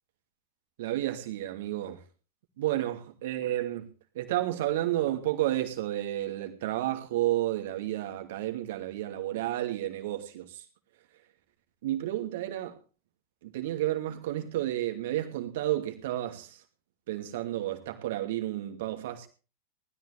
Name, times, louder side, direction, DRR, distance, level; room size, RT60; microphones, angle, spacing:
voice 1, 0.8-2.0 2.6-3.9 4.1-10.6 11.8-12.8 13.4-16.6 17.1-19.3, right 14 dB, 55° right, 2.5 m, -31 dB
19.5 x 13.5 x 3.5 m
figure-of-eight pair, 90°, 0 cm